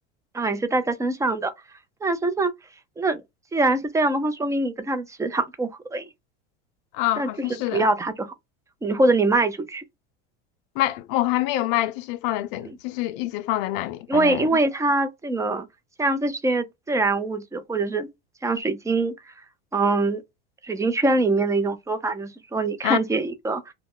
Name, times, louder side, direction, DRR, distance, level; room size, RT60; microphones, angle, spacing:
voice 1, 0.3-1.5 2.0-2.5 3.0-3.2 3.5-6.1 7.2-7.3 7.7-8.3 8.8-9.8 12.6-12.7 14.1-15.7 16.0-18.1 18.4-19.1 19.7-20.2 20.6-23.7, right 2 dB, 10° right, 0.4 m, -23 dB
voice 2, 6.9-7.8 10.8-14.5 22.8-23.0, left 15 dB, 65° left, 0.5 m, -26 dB
2.2 x 2.0 x 3.6 m
supercardioid pair, 105°, 30 cm